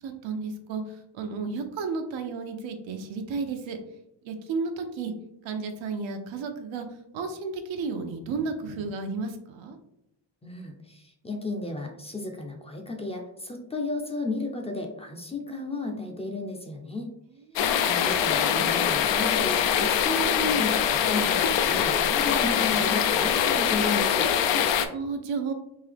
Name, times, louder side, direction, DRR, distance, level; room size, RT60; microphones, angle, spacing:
voice 1, 0.0-3.8 4.2-5.1 5.4-6.9 7.1-9.8 17.5-17.7 24.9-25.5, right 4 dB, 85° right, 6 dB, 0.7 m, -32 dB
voice 2, 10.4-17.1 17.8-24.3, left 2 dB, 15° left, 2 dB, 0.4 m, -33 dB
sound 1, 17.6-24.9, left 8 dB, 75° left, 0.5 m, -23 dB
3.7 x 2.7 x 3.3 m, 0.80 s
cardioid pair, 125°, 45 cm